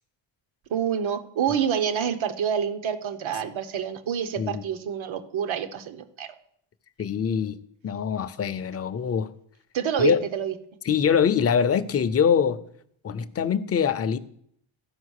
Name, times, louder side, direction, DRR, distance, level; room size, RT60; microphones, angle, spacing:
voice 1, 0.7-6.4 9.7-10.6, right 8 dB, 70° right, 1.1 m, -27 dB
voice 2, 7.0-7.6 7.8-9.3 10.0-10.2 10.9-12.6 13.0-14.2, left 7 dB, 30° left, 0.5 m, -23 dB
13.5 x 5.4 x 6.5 m
wide cardioid pair, 155°, 49 cm